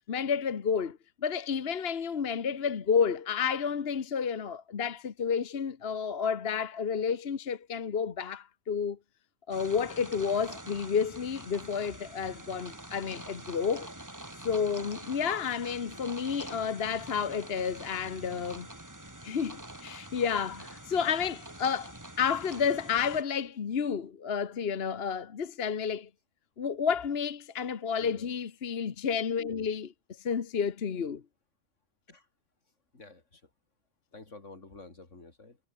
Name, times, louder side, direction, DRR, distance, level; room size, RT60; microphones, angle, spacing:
voice 1, 0.1-9.0 9.5-13.9 14.4-18.7 19.2-26.1 26.6-29.9 30.2-31.2, left 6 dB, 55° left, 1.4 m, -31 dB
sound 1, 9.5-23.2, right 1 dB, 15° right, 2.4 m, -46 dB
voice 2, 28.0-28.3 32.1-32.3 32.9-33.5 34.1-35.6, left 3 dB, 85° left, 3.9 m, -50 dB
omnidirectional pair, 1.2 m